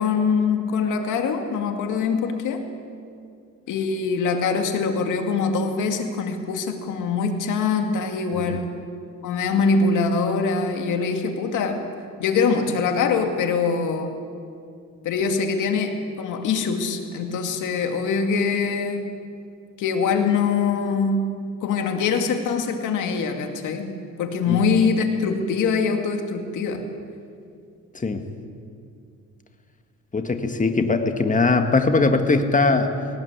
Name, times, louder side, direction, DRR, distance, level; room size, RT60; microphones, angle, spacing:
voice 1, 0.0-2.7 3.7-8.7 9.2-11.8 12.2-14.1 15.0-19.2 19.8-21.4 21.6-26.8, left 5 dB, 85° left, 5 dB, 2.3 m, -23 dB
voice 2, 30.1-33.0, left 3 dB, 25° left, 6 dB, 1.8 m, -21 dB
19.0 x 17.5 x 8.1 m, 2.4 s
cardioid pair, 90°, 30 cm